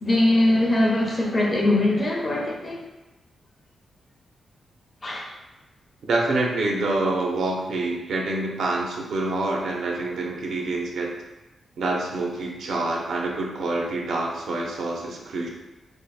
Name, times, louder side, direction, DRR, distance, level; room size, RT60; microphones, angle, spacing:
voice 1, 0.0-2.8 5.0-5.3, left 1 dB, 35° left, -2 dB, 0.6 m, -21 dB
voice 2, 6.1-11.1 11.8-15.5, right 2 dB, 80° right, -1 dB, 0.5 m, -26 dB
3.3 x 2.0 x 2.3 m, 1.1 s
cardioid pair, 105°, 0 cm